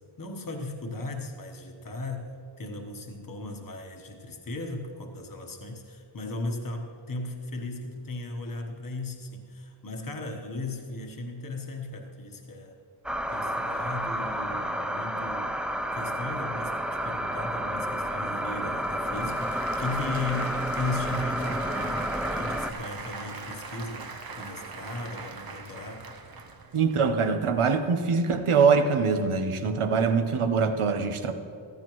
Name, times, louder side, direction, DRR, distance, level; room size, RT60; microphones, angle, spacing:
voice 1, 0.2-12.8 13.3-15.5 15.9-26.1, left 2 dB, 40° left, 2 dB, 1.2 m, -36 dB
sound 1, 13.0-22.7, equal, ahead, 0.4 m, -30 dB
Applause / Crowd, 18.2-27.0, right 4 dB, 45° right, 0.8 m, -41 dB
voice 2, 26.7-31.3, right 5 dB, 80° right, 7 dB, 1.0 m, -23 dB
15.0 x 14.5 x 3.1 m, 2.3 s
wide cardioid pair, 80°, 49 cm